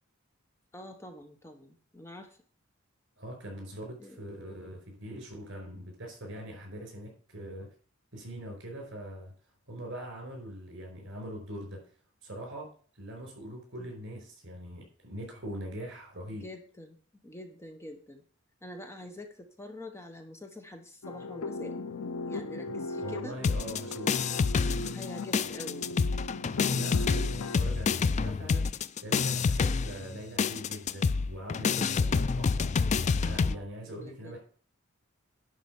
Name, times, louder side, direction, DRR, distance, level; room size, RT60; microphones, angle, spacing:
voice 1, 0.7-2.4 4.0-4.2 13.8-13.9 16.4-17.0 17.2-18.2 18.6-21.8 22.3-23.4 24.9-25.9 33.3-34.4, left 1 dB, 15° left, 5 dB, 0.9 m, -45 dB
voice 2, 3.2-7.7 8.1-9.3 9.7-11.8 12.2-12.7 12.9-16.4 22.7-22.8 23.0-24.3 26.7-32.7 33.2-34.4, equal, 60° right, 2 dB, 4.9 m, -42 dB
sound 1, 21.0-27.6, left 3 dB, 80° left, 0.6 m, -38 dB
sound 2, 23.4-25.1 25.3-33.5, left 5 dB, 35° left, 0.3 m, -28 dB
11.0 x 4.4 x 7.0 m, 0.43 s
head